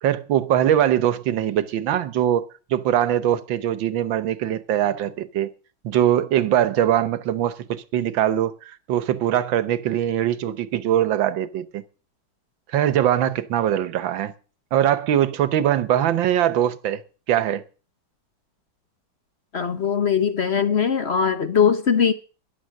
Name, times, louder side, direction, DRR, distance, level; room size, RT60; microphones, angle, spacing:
voice 1, 0.0-5.5 5.8-11.8 12.7-14.3 14.7-17.0 17.3-17.6, right 11 dB, 80° right, 1.7 m, -22 dB
voice 2, 19.5-22.1, left 7 dB, 45° left, 0.9 m, -20 dB
14.0 x 11.0 x 6.4 m
omnidirectional pair, 2.1 m